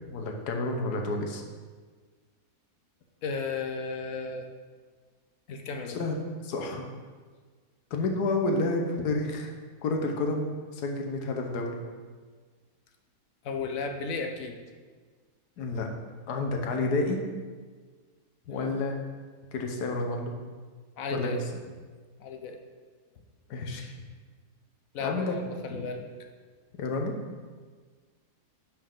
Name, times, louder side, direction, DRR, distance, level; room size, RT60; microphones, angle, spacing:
voice 1, 0.1-1.4 5.9-6.2 6.4-6.9 7.9-11.8 15.6-15.9 16.3-17.2 18.5-19.0 19.5-20.4 21.1-21.4 23.5-24.0 25.0-25.4 25.7-25.8 26.8-27.2, left 2 dB, 80° left, 2 dB, 1.4 m, -30 dB
voice 2, 3.2-4.5 5.5-6.0 13.4-14.6 18.5-18.7 21.0-21.4 22.2-22.6 24.9-26.0, left 4 dB, 65° left, 4 dB, 1.0 m, -34 dB
10.5 x 4.6 x 3.7 m, 1.5 s
omnidirectional pair, 1.7 m